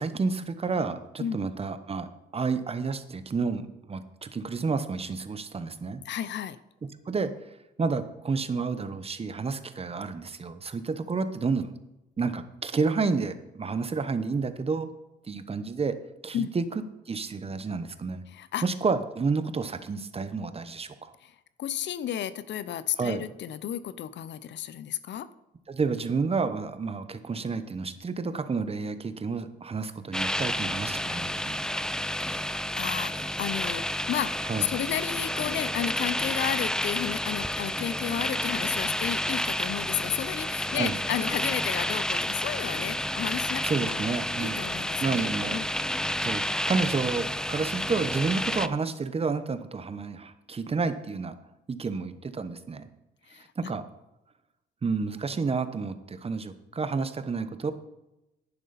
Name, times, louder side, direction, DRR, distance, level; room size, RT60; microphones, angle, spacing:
voice 1, 0.0-2.1 2.3-6.0 7.1-7.3 7.8-11.7 12.2-14.9 15.3-16.0 16.2-16.6 17.1-18.2 18.6-21.1 23.0-23.2 25.7-31.9 34.5-34.6 40.7-40.9 43.6-44.6 45.0-45.6 46.2-51.3 51.7-52.9 53.3-53.8 54.8-57.7, right 4 dB, 30° right, 11 dB, 0.9 m, -30 dB
voice 2, 6.0-6.6 16.3-16.5 18.3-18.6 21.2-25.3 32.2-44.0 44.4-45.7 53.3-53.5, left 10 dB, 65° left, 15 dB, 0.6 m, -33 dB
sound 1, 30.1-48.7, left 1 dB, 5° left, 0.4 m, -30 dB
11.0 x 10.0 x 4.1 m, 0.94 s
cardioid pair, 90°, 20 cm